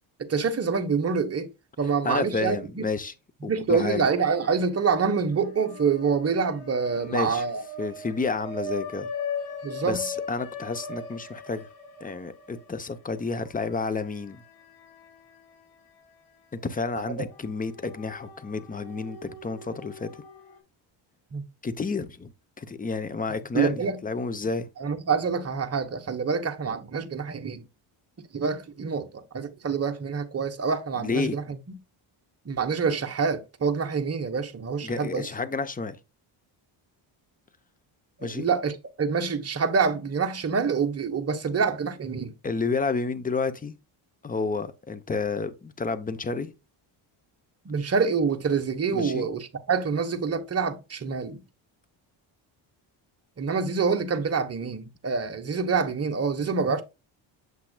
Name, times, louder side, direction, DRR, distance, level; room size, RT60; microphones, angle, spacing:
voice 1, 0.2-1.5 1.8-2.9 3.4-7.6 9.6-10.0 21.3-21.4 23.5-24.0 24.8-27.6 28.3-31.6 32.4-35.2 38.2-42.3 47.6-51.4 53.4-56.8, right 5 dB, 30° right, 1.1 m, -26 dB
voice 2, 2.0-3.1 3.4-4.1 7.0-7.4 7.8-9.1 9.8-11.6 12.0-14.4 16.6-20.1 21.6-22.3 22.6-24.7 31.0-31.5 34.8-36.0 38.2-38.5 42.4-43.8 44.2-46.5 48.9-49.3, left 4 dB, 15° left, 0.7 m, -30 dB
sound 1, 4.1-4.9 5.2-15.6 16.0-16.1 17.2-20.6, left 3 dB, 90° left, 2.6 m, -40 dB
7.5 x 5.8 x 2.3 m
cardioid pair, 95°, 49 cm